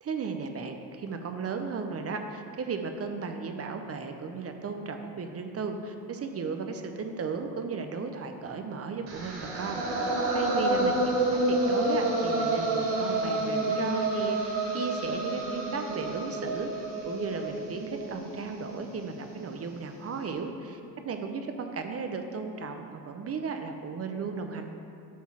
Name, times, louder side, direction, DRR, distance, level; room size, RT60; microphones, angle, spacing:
voice 1, 0.0-11.0 11.3-20.8 21.0-24.7, right 5 dB, 35° right, 6 dB, 0.6 m, -35 dB
sound 1, 9.1-19.1, right 2 dB, 85° right, 1.6 m, -29 dB
8.5 x 3.8 x 6.1 m, 2.7 s
supercardioid pair, 80°, 42 cm